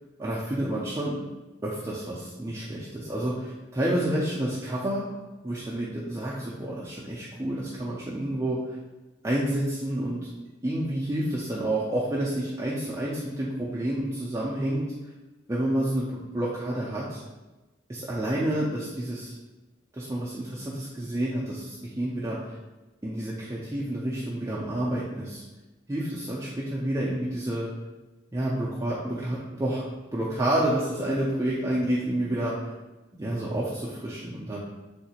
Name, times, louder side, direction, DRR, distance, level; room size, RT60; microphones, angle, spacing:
voice 1, 0.2-1.2 1.6-5.0 5.4-8.8 9.2-10.3 10.6-14.9 15.5-17.2 17.9-19.3 19.9-22.6 23.0-25.4 25.9-27.7 28.3-29.9 30.1-32.7 33.1-34.6, right 1 dB, 15° right, -7 dB, 0.3 m, -29 dB
3.6 x 2.4 x 2.8 m, 1.1 s
head